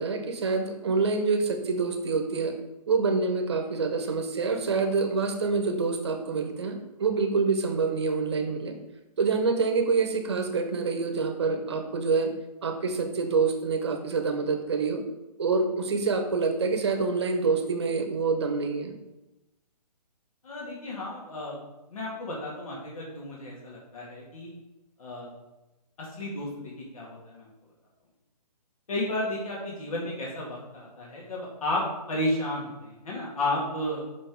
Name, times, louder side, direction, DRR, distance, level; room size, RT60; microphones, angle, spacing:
voice 1, 0.0-2.5 2.9-8.8 9.2-12.3 12.6-15.0 15.4-19.0, right 4 dB, 40° right, 5 dB, 1.1 m, -26 dB
voice 2, 20.4-21.6 21.9-24.5 25.0-25.3 26.0-26.5 26.9-27.5 28.9-34.0, left 1 dB, 55° left, -4 dB, 2.4 m, -32 dB
5.7 x 5.1 x 4.7 m, 1.0 s
hypercardioid pair, 175°, 21 cm